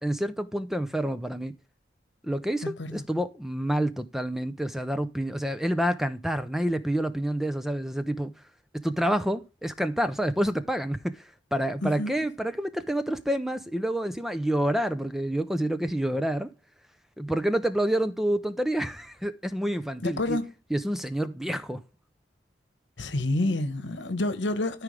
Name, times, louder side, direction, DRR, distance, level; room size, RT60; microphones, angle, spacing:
voice 1, 0.0-1.5 2.2-8.3 8.8-16.5 17.2-20.4 20.7-21.8, right 1 dB, ahead, 0.5 m, -28 dB
voice 2, 2.6-3.0 11.8-12.1 20.0-20.5 23.0-24.8, left 2 dB, 65° left, 1.2 m, -28 dB
13.5 x 4.9 x 3.2 m
head